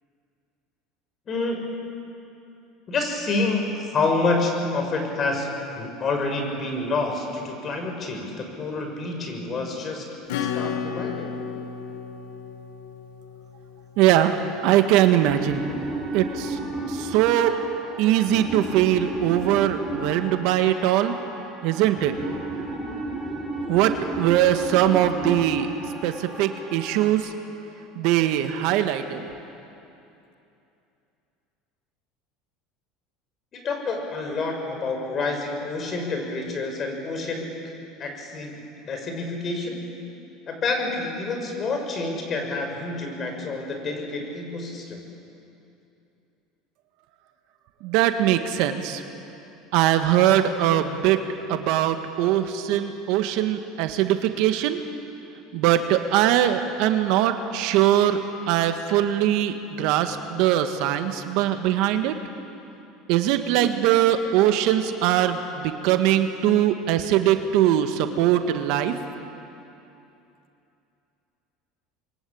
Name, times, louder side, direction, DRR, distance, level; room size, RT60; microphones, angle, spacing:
voice 1, 1.3-1.6 2.9-5.5 5.7-10.1 10.4-11.3 33.5-37.5 38.0-39.8 40.5-45.0, left 3 dB, 35° left, 3 dB, 6.4 m, -28 dB
Acoustic guitar / Strum, 10.3-14.6, left 7 dB, 85° left, 2.1 m, -33 dB
voice 2, 14.0-14.4 14.6-15.6 16.1-16.5 17.1-17.6 18.0-21.1 21.6-22.1 23.7-25.7 26.0-26.1 26.4-27.2 28.0-29.2 47.8-49.0 49.7-51.2 51.5-54.8 55.5-58.2 58.5-62.1 63.1-68.9, right 12 dB, 70° right, 7 dB, 1.7 m, -21 dB
sound 1, 15.2-27.1, right 2 dB, 10° right, 5.6 m, -33 dB
26.5 x 22.5 x 8.8 m, 2.8 s
supercardioid pair, 110°, 0 cm